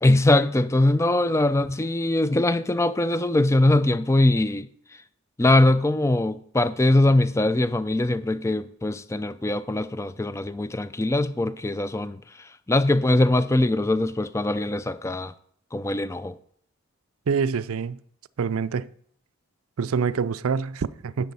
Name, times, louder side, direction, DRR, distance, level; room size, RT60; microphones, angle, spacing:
voice 1, 0.0-4.7 5.4-15.3 15.7-16.3, left 1 dB, 15° left, 0.4 m, -22 dB
voice 2, 17.3-18.0 18.4-18.9 19.8-21.3, right 6 dB, 70° right, 0.4 m, -26 dB
10.5 x 7.5 x 5.4 m
head